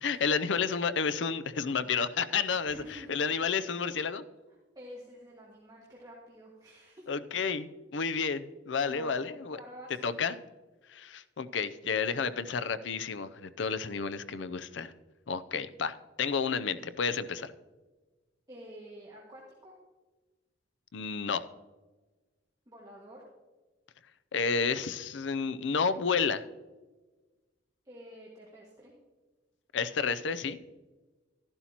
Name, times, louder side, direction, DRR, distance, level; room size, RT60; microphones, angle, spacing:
voice 1, 0.0-4.2 7.1-9.6 9.9-10.4 10.9-14.9 15.3-17.5 20.9-21.4 24.3-26.4 29.7-30.6, left 5 dB, 75° left, 14 dB, 0.5 m, -31 dB
voice 2, 2.6-3.2 4.8-7.1 8.8-9.3 9.6-10.2 18.5-19.7 22.7-23.2 27.9-28.9, equal, 20° right, -4 dB, 1.8 m, -49 dB
13.5 x 11.5 x 2.9 m, 1.2 s
head